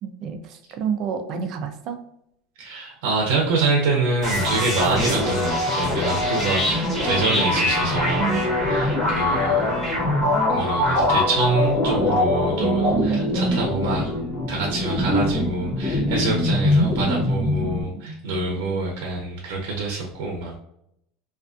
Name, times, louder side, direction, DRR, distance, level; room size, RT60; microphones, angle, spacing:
voice 1, 0.0-2.0 8.2-8.8 12.6-13.4 18.0-19.1, right 7 dB, 40° right, 7 dB, 0.4 m, -29 dB
voice 2, 2.6-9.7 10.5-14.2 14.5-20.6, right 3 dB, 85° right, 0 dB, 0.6 m, -26 dB
sound 1, 4.2-17.8, left 2 dB, 5° left, 1.1 m, -23 dB
2.4 x 2.3 x 2.4 m, 0.76 s
cardioid pair, 165°, 0 cm